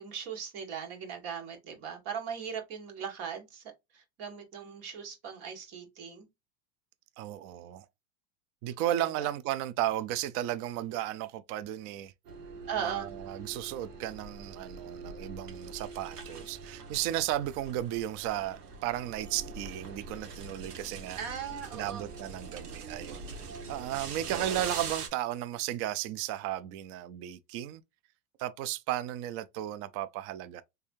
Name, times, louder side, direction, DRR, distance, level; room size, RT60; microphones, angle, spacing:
voice 1, 0.0-3.6 3.9-6.3 8.9-9.3 12.7-13.1 21.2-22.1, right 7 dB, 50° right, 2.0 m, -39 dB
voice 2, 7.2-7.9 8.6-12.1 12.8-21.2 21.7-23.3 23.7-27.8 28.4-30.6, right 13 dB, 35° right, 0.4 m, -34 dB
sound 1, 12.2-25.1, right 4 dB, 80° right, 1.4 m, -43 dB
3.4 x 3.3 x 2.6 m
hypercardioid pair, 110°, 46 cm